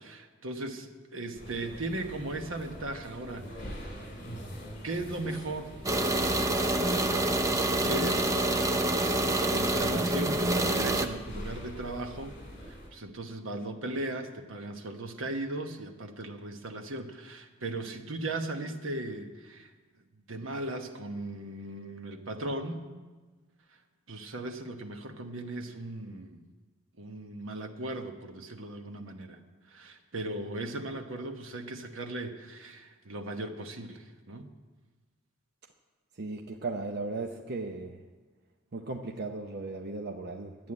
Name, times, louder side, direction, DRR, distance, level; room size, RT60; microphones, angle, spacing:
voice 1, 0.0-4.1 4.8-5.9 7.5-8.5 9.4-12.4 12.6-19.7 20.3-22.9 24.1-26.4 27.0-29.4 29.7-34.5, right 2 dB, 80° right, 6 dB, 1.2 m, -37 dB
sound 1, 1.3-12.9, equal, 40° left, 3.3 m, -44 dB
sound 2, 5.8-11.1, right 1 dB, 15° right, 0.6 m, -27 dB
voice 2, 36.2-38.0 38.7-40.7, right 3 dB, 55° right, 4 dB, 0.7 m, -36 dB
11.5 x 9.4 x 8.6 m, 1.3 s
head